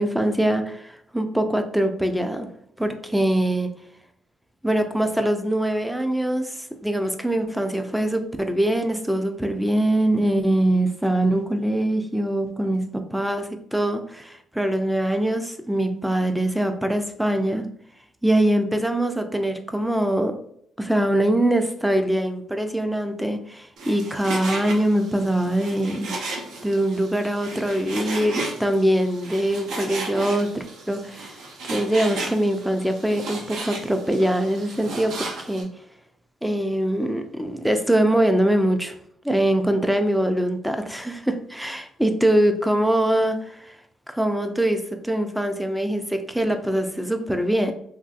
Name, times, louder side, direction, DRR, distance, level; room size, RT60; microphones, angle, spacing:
voice 1, 0.0-2.5 2.8-3.7 4.6-17.6 18.2-20.4 20.8-26.1 26.6-31.4 31.7-35.7 36.4-39.0 39.2-43.8 44.1-47.7, right 1 dB, 5° right, 7 dB, 0.4 m, -23 dB
Frying (food), 23.8-35.6, right 2 dB, 80° right, 0.7 m, -34 dB
3.0 x 2.6 x 2.4 m, 0.70 s
cardioid pair, 90°, 0 cm